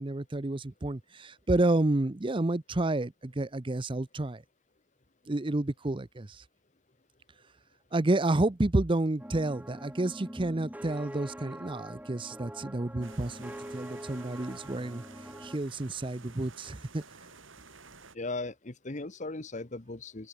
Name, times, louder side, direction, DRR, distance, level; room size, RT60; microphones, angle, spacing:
voice 1, 0.0-4.4 5.3-6.4 7.9-15.0 15.4-17.0, right 2 dB, 25° right, 0.7 m, -30 dB
sound 1, 9.2-15.6, equal, 10° right, 3.3 m, -44 dB
sound 2, 13.0-18.2, right 4 dB, 80° right, 7.3 m, -52 dB
voice 2, 18.1-20.3, left 2 dB, 40° left, 1.2 m, -37 dB
open air
head